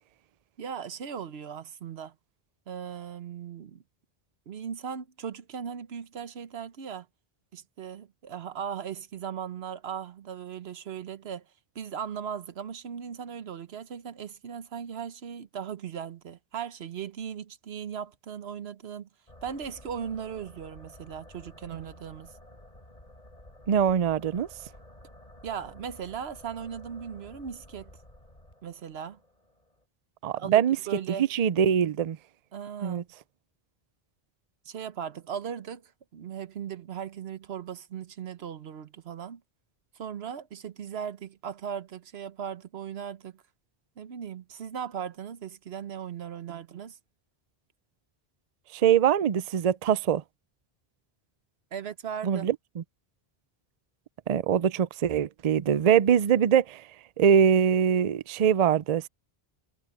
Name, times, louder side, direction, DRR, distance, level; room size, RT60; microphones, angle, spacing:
voice 1, 0.6-2.1 2.7-3.8 4.5-7.1 7.5-11.4 11.7-19.1 19.4-22.3 25.4-27.9 28.6-29.2 30.4-31.3 32.5-33.0 34.6-39.4 40.0-43.4 44.0-47.0 51.7-52.5, right 8 dB, 85° right, 1.1 m, -38 dB
sound 1, 19.3-29.8, left 1 dB, 40° left, 6.4 m, -52 dB
voice 2, 23.7-24.5 30.2-30.8 31.1-32.2 32.8-33.0 48.7-50.2 52.2-52.8 54.3-56.9 57.2-59.1, right 8 dB, 50° right, 0.5 m, -23 dB
omnidirectional pair, 1.0 m